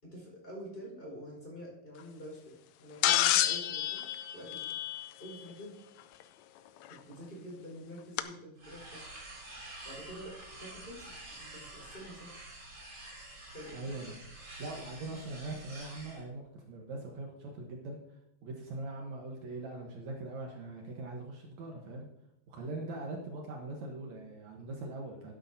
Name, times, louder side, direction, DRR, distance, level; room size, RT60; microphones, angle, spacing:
voice 1, 0.0-4.1 4.3-4.8 5.2-5.8 6.9-9.0 9.8-12.3 13.5-13.9, equal, 15° left, -3 dB, 4.9 m, -47 dB
sound 1, 3.0-5.3 6.9-7.0 8.2-8.3, left 13 dB, 80° left, 1.6 m, -29 dB
sound 2, 8.6-16.2, right 2 dB, 40° right, 4.1 m, -48 dB
voice 2, 13.7-14.1 14.6-18.0 18.4-22.1 22.5-25.3, right 2 dB, 65° right, 0 dB, 2.4 m, -41 dB
12.5 x 11.5 x 2.7 m, 0.80 s
omnidirectional pair, 3.6 m